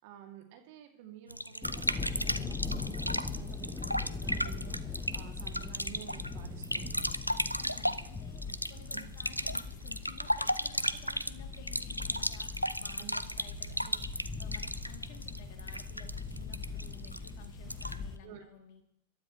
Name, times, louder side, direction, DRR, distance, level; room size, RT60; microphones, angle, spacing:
voice 1, 0.0-7.2 8.9-9.1 13.0-13.1 18.2-18.4, right 11 dB, 50° right, 3 dB, 2.6 m, -51 dB
sound 1, 1.3-18.1, equal, 90° left, 0.5 m, -36 dB
sound 2, 1.6-18.2, left 4 dB, 15° left, 1.1 m, -41 dB
voice 2, 7.3-18.8, left 8 dB, 50° left, 3 dB, 2.9 m, -55 dB
25.5 x 12.5 x 3.2 m, 0.75 s
figure-of-eight pair, 90°, 0 cm